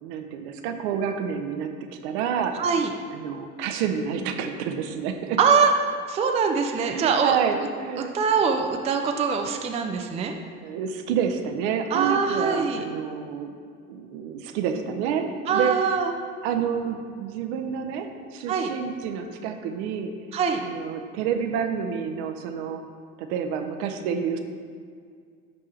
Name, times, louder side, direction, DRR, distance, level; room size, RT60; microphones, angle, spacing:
voice 1, 0.0-2.6 3.1-5.4 6.8-8.1 10.6-13.6 13.9-15.8 16.4-20.1 20.6-22.8 23.2-24.4, right 7 dB, 50° right, 6 dB, 0.7 m, -29 dB
voice 2, 2.6-2.9 5.4-5.7 6.1-7.4 8.1-10.3 11.9-12.8 15.5-16.1 18.5-18.7 20.3-20.6, right 5 dB, 15° right, 3 dB, 0.5 m, -23 dB
10.5 x 3.6 x 4.4 m, 2.1 s
figure-of-eight pair, 65°, 41 cm